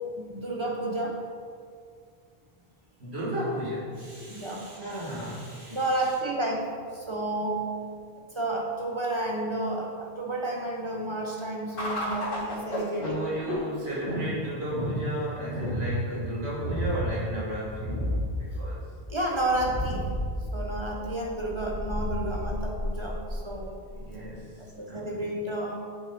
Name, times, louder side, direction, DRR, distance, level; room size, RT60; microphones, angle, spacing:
voice 1, 0.2-1.2 4.3-4.7 5.7-6.7 6.9-7.7 8.2-13.2 19.1-20.2 20.5-23.7 24.6-25.8, right 1 dB, 30° right, 0 dB, 0.7 m, -31 dB
voice 2, 3.0-6.2 13.0-18.0 18.4-18.9 23.9-25.2, right 1 dB, 80° right, -8 dB, 2.3 m, -34 dB
sound 1, 11.8-24.4, equal, 55° left, 1.4 m, -33 dB
7.7 x 4.1 x 4.3 m, 2.1 s
omnidirectional pair, 1.1 m